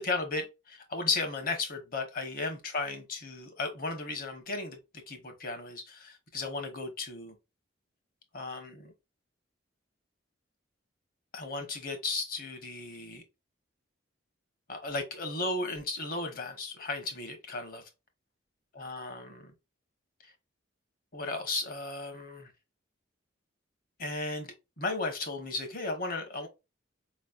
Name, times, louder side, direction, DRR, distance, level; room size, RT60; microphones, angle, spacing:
voice 1, 0.0-4.8 5.1-7.3 8.3-8.9 11.3-13.2 14.7-17.8 18.8-19.4 21.1-22.5 24.0-24.5 24.8-26.5, left 3 dB, 45° left, 1.1 m, -35 dB
4.9 x 3.1 x 2.4 m
head